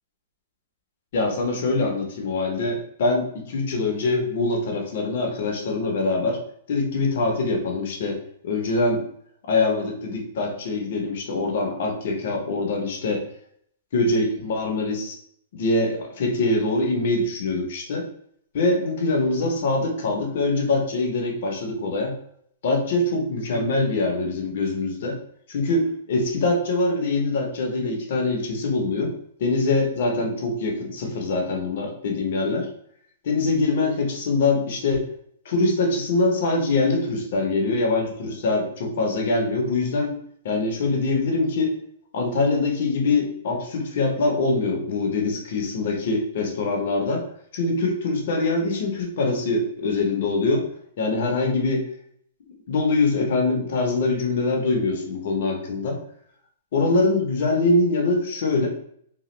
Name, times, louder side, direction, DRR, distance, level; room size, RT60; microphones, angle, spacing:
voice 1, 1.1-6.4 6.7-8.2 8.4-9.0 9.5-13.2 13.9-15.2 15.5-18.1 18.5-22.2 22.6-25.2 25.5-29.1 29.4-32.7 33.2-35.1 35.4-40.2 40.4-41.7 42.1-47.2 47.5-50.7 51.0-51.8 52.7-56.0 56.7-58.7, left 3 dB, 65° left, 1 dB, 0.9 m, -23 dB
3.0 x 2.2 x 3.2 m, 0.66 s
hypercardioid pair, 130°, 0 cm